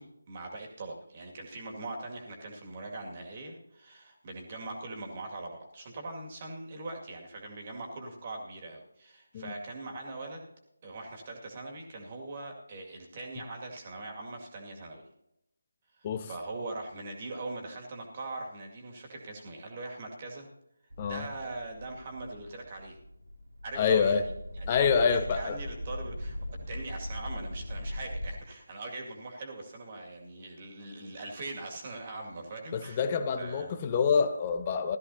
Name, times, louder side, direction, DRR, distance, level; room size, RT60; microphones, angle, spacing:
voice 1, 0.0-10.5 10.8-15.0 16.0-20.5 21.0-23.0 23.6-26.4 26.7-33.1 33.4-33.7, right 2 dB, 30° right, 1 dB, 2.2 m, -41 dB
sound 1, 20.9-28.3, left 1 dB, 90° right, 2.7 m, -40 dB
voice 2, 23.8-24.3 24.7-25.6 32.7-35.0, left 6 dB, 25° left, 9 dB, 0.7 m, -27 dB
16.5 x 13.0 x 2.8 m, 0.82 s
figure-of-eight pair, 160°, 0 cm